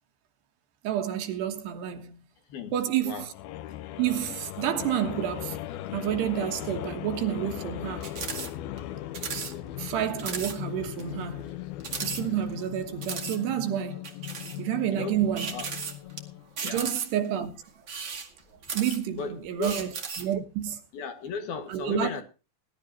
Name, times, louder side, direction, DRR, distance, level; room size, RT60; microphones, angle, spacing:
voice 1, 0.8-2.2 2.7-3.3 4.0-5.6 5.9-8.1 9.3-11.6 12.0-14.1 14.6-15.6 16.6-17.5 18.7-20.8 21.7-22.1, right 10 dB, 70° right, 3.1 m, -30 dB
sound 1, 3.3-16.5, left 13 dB, 85° left, 2.2 m, -38 dB
sound 2, 8.0-8.5 8.8-8.9 9.1-9.5 9.9-10.0 10.2-10.6 11.0-11.1 11.8-12.6 13.0-13.4 14.0-14.6 15.4-16.2 16.6-17.3 17.8-19.2 19.6-20.3, right 5 dB, 45° right, 1.7 m, -35 dB
voice 2, 19.2-19.8 20.9-22.2, left 5 dB, 60° left, 3.2 m, -35 dB
20.0 x 12.0 x 2.9 m
omnidirectional pair, 5.4 m